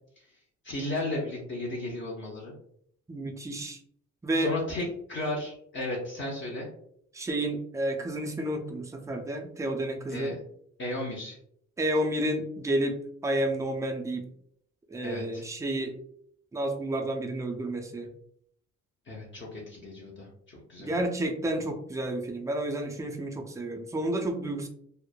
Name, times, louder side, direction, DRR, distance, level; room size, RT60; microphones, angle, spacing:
voice 1, 0.6-2.5 4.4-6.7 10.1-10.4 10.8-11.4 15.0-15.4 19.1-20.9, left 1 dB, 40° left, -3 dB, 0.8 m, -34 dB
voice 2, 3.1-3.8 4.2-4.5 7.1-10.4 11.8-14.3 14.9-16.0 16.5-18.1 20.8-24.7, right 1 dB, 10° right, 4 dB, 0.4 m, -30 dB
3.1 x 2.0 x 2.2 m, 0.67 s
cardioid pair, 90°, 30 cm